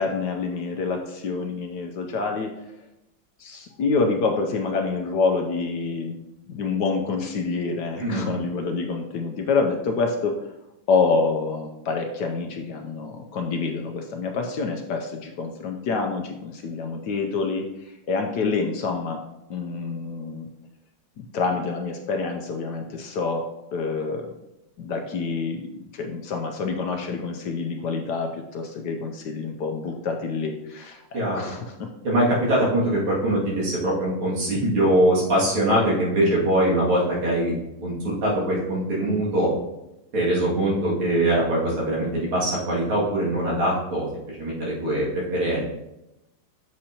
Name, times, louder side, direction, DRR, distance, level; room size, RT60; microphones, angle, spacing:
voice 1, 0.0-2.5 3.4-6.2 6.5-10.4 10.9-19.2 19.5-20.5 21.2-24.3 24.8-31.9, left 4 dB, 70° left, 4 dB, 1.1 m, -27 dB
voice 2, 8.0-8.3 31.1-31.4 32.0-37.5 37.8-39.5 40.1-45.6, right 1 dB, 90° right, -6 dB, 3.2 m, -22 dB
7.7 x 6.5 x 2.9 m, 0.93 s
omnidirectional pair, 2.3 m